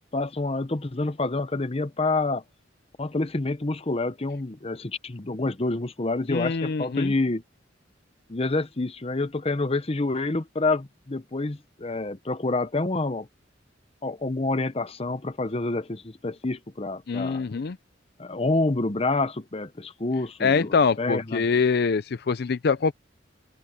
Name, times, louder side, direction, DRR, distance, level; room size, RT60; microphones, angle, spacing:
voice 1, 0.1-2.4 3.0-7.4 8.3-13.3 14.0-17.4 18.2-21.4, left 2 dB, 30° left, 0.9 m, -28 dB
voice 2, 6.3-7.1 17.1-17.8 20.4-22.9, left 5 dB, 55° left, 0.5 m, -24 dB
head